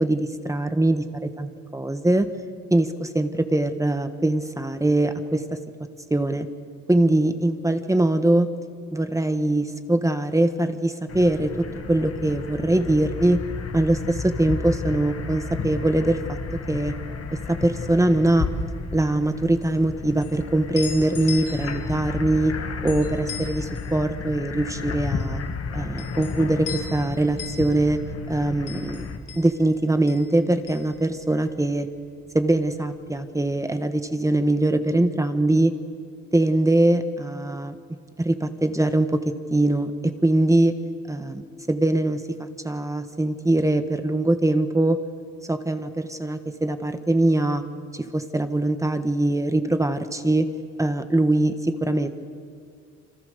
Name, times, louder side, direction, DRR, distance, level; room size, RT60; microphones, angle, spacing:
voice 1, 0.0-2.3 2.7-5.4 6.1-6.5 6.9-8.5 8.9-13.4 13.7-16.4 16.7-16.9 17.5-18.5 18.9-22.6 22.8-25.4 25.7-28.0 28.3-29.1 29.3-31.9 32.3-35.7 36.3-37.7 38.2-40.7 41.1-45.0 45.5-47.6 47.9-50.5 50.8-52.1, right 1 dB, 10° right, 9 dB, 1.5 m, -22 dB
sound 1, 11.1-29.2, left 4 dB, 50° left, 2.2 m, -32 dB
sound 2, 19.6-31.8 32.1-33.1, left 6 dB, 75° left, 5.2 m, -40 dB
27.5 x 25.5 x 6.9 m, 2.2 s
cardioid pair, 90°, 30 cm